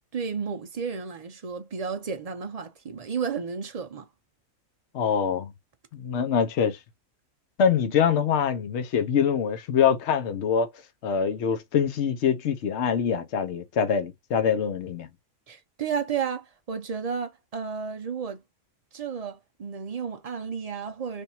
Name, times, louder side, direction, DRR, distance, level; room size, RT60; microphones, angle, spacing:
voice 1, 0.1-4.1 15.5-18.4 18.9-21.2, right 6 dB, 55° right, 0.4 m, -32 dB
voice 2, 4.9-5.5 5.9-6.8 7.6-10.7 11.0-15.1, left 7 dB, 60° left, 1.0 m, -24 dB
3.4 x 2.6 x 4.2 m
omnidirectional pair, 1.4 m